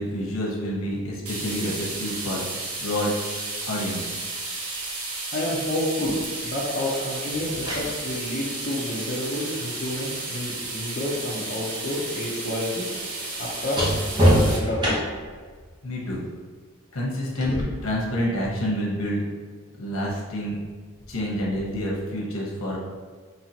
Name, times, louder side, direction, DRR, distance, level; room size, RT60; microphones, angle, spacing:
voice 1, 0.0-2.4 2.8-3.1 3.6-4.2 15.8-16.2 16.9-19.2 19.8-20.5 21.1-22.8, equal, 80° left, -4 dB, 1.1 m, -28 dB
sound 1, 1.3-14.6, right 2 dB, 90° right, 1.0 m, -33 dB
voice 2, 5.3-12.9 13.4-15.0, left 1 dB, 40° left, -6 dB, 0.8 m, -29 dB
sound 2, 7.3-11.3 11.6-15.4 17.4-17.6, equal, 20° right, 0.9 m, -27 dB
5.6 x 3.0 x 2.8 m, 1.5 s
head